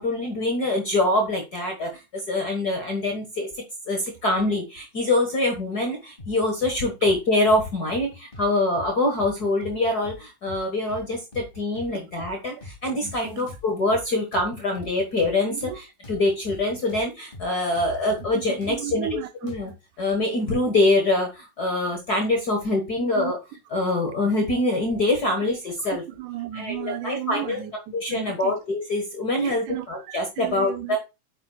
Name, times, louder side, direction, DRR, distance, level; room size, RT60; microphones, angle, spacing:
voice 1, 0.0-3.5 3.9-19.7 20.0-23.4 23.7-26.0 26.5-27.6 27.9-31.0, left 2 dB, 45° left, 1.3 m, -24 dB
sound 1, 6.2-6.8 7.0-7.2 7.5-8.5 8.7-8.9 9.2-10.2 10.5-10.6 10.9-11.9 12.2-12.3 12.6-14.1 14.3-17.1 17.3-17.5 17.7-19.8, left 3 dB, 20° left, 1.8 m, -42 dB
voice 2, 13.0-13.5 15.5-15.8 18.3-19.5 23.0-23.3 26.2-28.5 29.4-31.0, right 11 dB, 80° right, 2.2 m, -34 dB
9.1 x 7.7 x 2.3 m
omnidirectional pair, 3.6 m